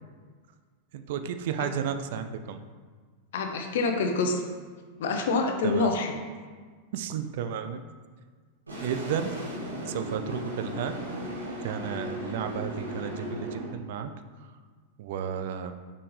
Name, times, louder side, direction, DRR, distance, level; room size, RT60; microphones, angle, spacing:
voice 1, 0.9-2.6 5.6-5.9 6.9-7.8 8.8-9.3 9.9-11.0 11.6-14.1 15.0-15.8, right 8 dB, 55° right, 9 dB, 0.4 m, -33 dB
voice 2, 3.3-4.4 5.0-6.1, left 3 dB, 55° left, 4 dB, 0.8 m, -26 dB
sound 1, 8.7-13.7, right 1 dB, 80° right, 1.5 m, -36 dB
6.8 x 5.3 x 3.2 m, 1.5 s
figure-of-eight pair, 90°, 0 cm